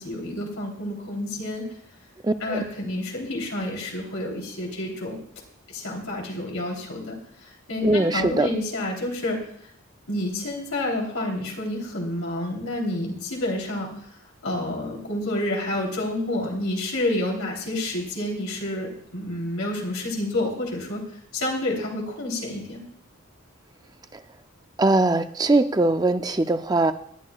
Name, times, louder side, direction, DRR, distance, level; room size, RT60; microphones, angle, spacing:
voice 1, 0.0-1.6 2.4-5.2 5.7-7.1 7.7-9.4 10.1-13.9 14.4-21.0 21.3-22.9, left 1 dB, 85° left, -1 dB, 3.4 m, -29 dB
voice 2, 2.2-2.6 7.8-8.5 24.1-24.2 24.8-26.9, right 2 dB, 20° right, 9 dB, 0.4 m, -21 dB
19.5 x 11.5 x 2.4 m, 0.67 s
head